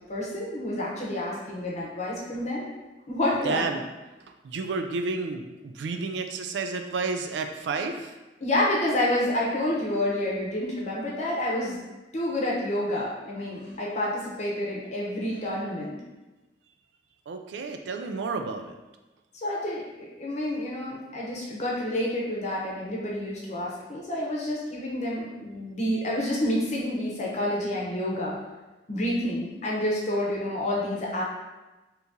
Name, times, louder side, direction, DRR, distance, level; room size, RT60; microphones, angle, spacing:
voice 1, 0.1-2.7 3.1-3.7 8.4-11.8 12.1-16.0 19.4-28.4 28.9-31.2, left 1 dB, 40° left, -4 dB, 0.7 m, -29 dB
voice 2, 3.4-3.9 4.4-8.2 17.3-18.8, right 4 dB, 85° right, 6 dB, 0.3 m, -31 dB
2.9 x 2.7 x 3.5 m, 1.1 s
head